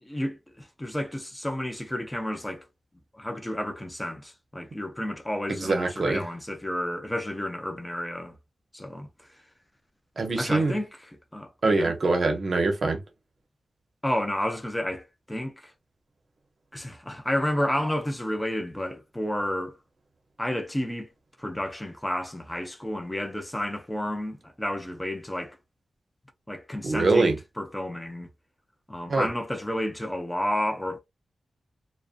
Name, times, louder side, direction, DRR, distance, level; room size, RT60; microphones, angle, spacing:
voice 1, 0.0-2.6 3.1-8.4 8.7-9.1 10.4-10.9 11.3-12.0 14.0-15.7 16.7-19.8 20.4-21.1 21.4-25.6 26.5-28.3 28.9-31.0, left 1 dB, 10° left, 0.5 m, -31 dB
voice 2, 5.5-6.2 10.2-10.8 11.6-13.0 26.8-27.4 29.1-29.3, right 3 dB, 45° right, 0.7 m, -23 dB
2.5 x 2.1 x 2.4 m
wide cardioid pair, 155°, 0 cm